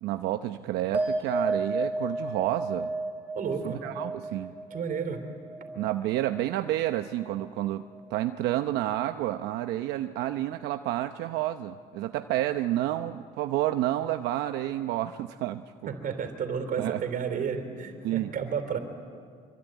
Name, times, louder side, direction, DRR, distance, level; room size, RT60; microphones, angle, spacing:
voice 1, 0.0-2.9 3.6-4.5 5.8-15.6 16.8-17.0 18.0-18.3, right 14 dB, 90° right, 8 dB, 0.8 m, -30 dB
sound 1, 0.9-7.6 7.9-8.6, right 2 dB, 10° right, 6.5 m, -34 dB
voice 2, 3.3-3.8 4.7-5.2 15.9-18.8, right 6 dB, 55° right, 8 dB, 3.9 m, -32 dB
25.5 x 25.0 x 9.3 m, 2.1 s
cardioid pair, 110°, 17 cm